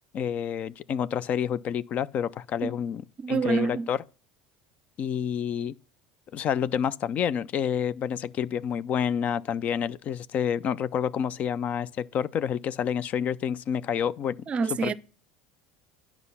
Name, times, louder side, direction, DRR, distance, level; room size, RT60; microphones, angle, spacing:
voice 1, 0.1-3.0 3.3-4.0 5.0-5.7 6.3-14.4 14.8-14.9, left 8 dB, 45° left, 0.4 m, -28 dB
voice 2, 3.2-3.9 14.5-14.9, right 5 dB, 35° right, 0.6 m, -27 dB
9.5 x 6.0 x 5.5 m
supercardioid pair, 115°, 4 cm